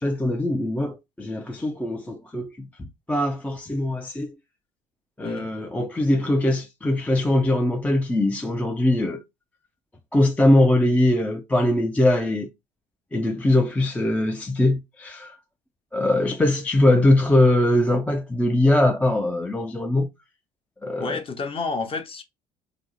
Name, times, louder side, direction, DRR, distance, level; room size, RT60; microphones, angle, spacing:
voice 1, 0.0-4.3 5.2-9.2 10.1-12.5 13.1-15.4 15.9-20.1 20.8-21.2, left 1 dB, 5° left, 0.4 m, -21 dB
voice 2, 21.0-22.2, left 4 dB, 25° left, 0.7 m, -30 dB
2.6 x 2.0 x 3.8 m
hypercardioid pair, 65°, 20 cm